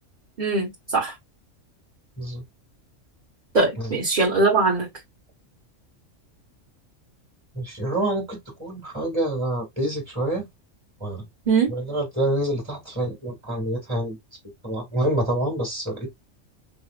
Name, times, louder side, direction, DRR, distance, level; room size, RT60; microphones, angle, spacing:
voice 1, 0.4-1.1 3.5-4.9 11.5-11.7, right 3 dB, 35° right, 1.2 m, -21 dB
voice 2, 7.5-10.5 11.0-11.2 11.7-14.2 14.6-16.1, right 1 dB, 20° right, 2.1 m, -27 dB
5.5 x 2.1 x 2.5 m
omnidirectional pair, 1.4 m